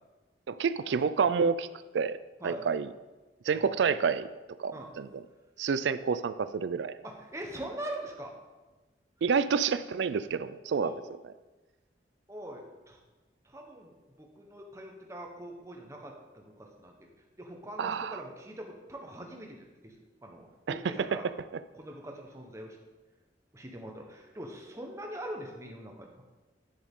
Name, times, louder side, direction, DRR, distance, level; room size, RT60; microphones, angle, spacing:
voice 1, 0.5-1.7 1.9-2.2 2.4-2.9 3.5-4.3 4.6-5.1 5.6-6.9 9.2-10.9 17.8-18.2 20.7-20.8, right 6 dB, 85° right, 14 dB, 0.4 m, -28 dB
voice 2, 2.4-2.7 3.5-3.8 4.7-4.9 7.0-8.3 10.8-11.0 12.3-13.0 13.4-17.1 17.4-21.2 21.7-22.8 23.5-26.1, right 1 dB, 15° right, 1 dB, 1.1 m, -43 dB
9.9 x 7.1 x 3.7 m, 1.2 s
head